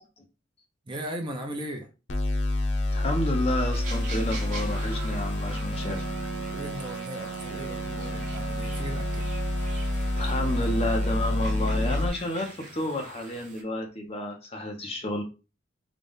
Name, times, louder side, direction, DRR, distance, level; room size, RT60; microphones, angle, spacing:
voice 1, 0.9-1.9 6.5-9.3, equal, 25° right, 0.6 m, -37 dB
sound 1, 2.1-12.1, left 1 dB, 80° left, 0.7 m, -29 dB
voice 2, 2.9-6.1 10.2-15.2, left 1 dB, 30° left, 0.8 m, -30 dB
sound 2, 3.7-13.6, right 3 dB, 40° right, 1.1 m, -45 dB
Wind instrument woodwind instrument, 5.7-12.2, right 7 dB, 80° right, 0.4 m, -39 dB
3.9 x 2.3 x 3.5 m
head